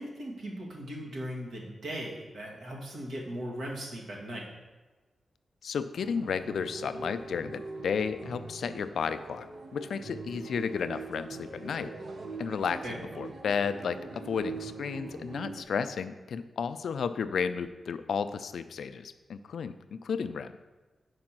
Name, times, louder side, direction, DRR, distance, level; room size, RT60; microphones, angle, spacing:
voice 1, 0.0-4.5 12.8-13.0, equal, 80° right, -2 dB, 1.5 m, -38 dB
voice 2, 5.6-9.5 9.7-11.9 12.4-20.5, left 6 dB, 80° left, 11 dB, 0.3 m, -33 dB
sound 1, 5.9-15.6, right 3 dB, 50° right, 0.6 m, -42 dB
5.2 x 4.8 x 5.9 m, 1.3 s
wide cardioid pair, 170°, 0 cm